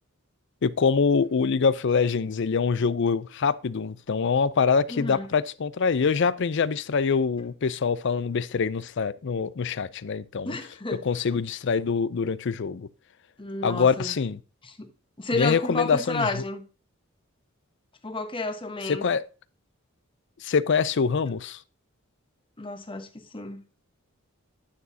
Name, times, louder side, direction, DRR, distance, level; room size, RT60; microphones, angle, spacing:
voice 1, 0.6-10.6 11.0-12.9 13.6-14.4 15.3-16.4 18.9-19.2 20.4-21.6, left 5 dB, 60° left, 0.5 m, -24 dB
voice 2, 4.9-5.3 10.4-11.0 13.4-14.1 14.6-14.9 15.2-16.6 18.0-19.1 22.6-23.6, left 2 dB, 25° left, 1.1 m, -31 dB
9.7 x 6.2 x 2.7 m
head